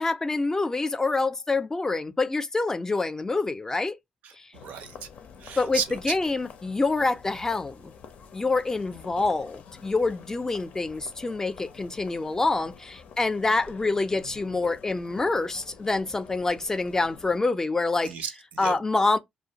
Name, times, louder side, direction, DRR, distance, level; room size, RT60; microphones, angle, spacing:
voice 1, 0.0-4.0 4.4-4.5 5.6-7.9 8.3-18.1 18.6-19.2, left 3 dB, 20° left, 0.4 m, -26 dB
voice 2, 4.2-5.1 5.4-6.0 18.0-18.8, right 7 dB, 85° right, 0.5 m, -34 dB
sound 1, 4.5-17.4, left 6 dB, 75° left, 0.5 m, -48 dB
2.4 x 2.2 x 2.8 m
cardioid pair, 90°, 3 cm